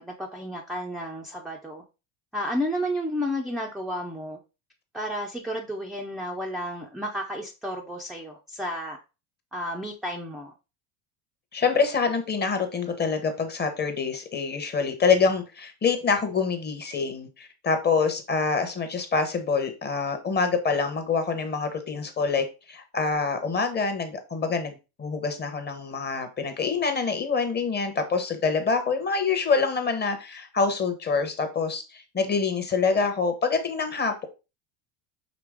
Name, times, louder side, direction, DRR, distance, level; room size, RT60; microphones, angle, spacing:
voice 1, 0.0-1.8 2.3-4.4 4.9-9.0 9.5-10.5, equal, ahead, 0.4 m, -32 dB
voice 2, 11.5-34.3, left 5 dB, 20° left, 0.8 m, -26 dB
5.1 x 2.9 x 3.4 m
supercardioid pair, 105°, 47 cm